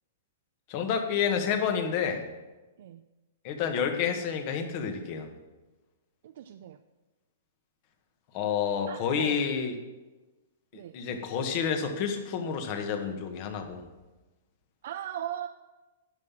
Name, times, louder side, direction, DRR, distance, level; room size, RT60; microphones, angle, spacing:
voice 1, 0.7-2.2 3.4-5.3 8.3-9.8 10.7-13.8, left 7 dB, 45° left, 5 dB, 1.6 m, -29 dB
voice 2, 6.2-6.8 8.9-9.4 10.7-11.0 14.8-15.5, right 10 dB, 65° right, 8 dB, 0.5 m, -38 dB
11.0 x 5.7 x 7.4 m, 1.1 s
hypercardioid pair, 135°, 0 cm